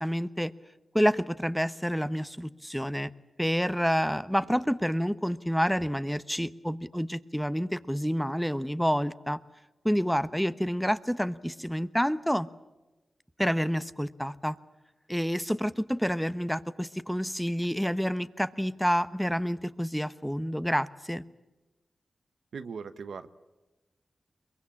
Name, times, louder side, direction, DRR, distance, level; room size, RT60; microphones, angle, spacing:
voice 1, 0.0-0.5 0.9-3.1 3.4-9.4 9.8-12.5 13.4-14.6 15.1-21.2, equal, ahead, 14 dB, 1.0 m, -28 dB
voice 2, 22.5-23.3, right 5 dB, 85° right, 11 dB, 1.0 m, -39 dB
23.0 x 22.0 x 8.5 m, 1.1 s
cardioid pair, 50°, 0 cm